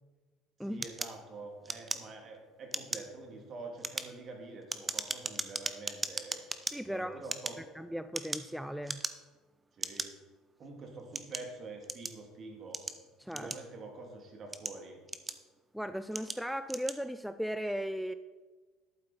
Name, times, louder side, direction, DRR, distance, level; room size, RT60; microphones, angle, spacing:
voice 1, 0.6-6.4 6.9-7.6 9.7-10.1 10.6-12.8 13.3-15.0, right 3 dB, 45° right, 2 dB, 2.9 m, -46 dB
sound 1, 0.8-2.4 2.7-3.1 3.7-6.7 7.2-8.5 8.8-9.4 9.8-10.1 10.7-12.2 12.7-13.9 14.4-15.6 16.1-16.4 16.7-17.0, right 3 dB, 20° right, 0.9 m, -38 dB
voice 2, 6.7-7.2 7.8-9.0 13.2-13.5 15.7-18.1, equal, ahead, 11 dB, 0.4 m, -37 dB
11.5 x 8.6 x 4.4 m, 1.3 s
hypercardioid pair, 70°, 0 cm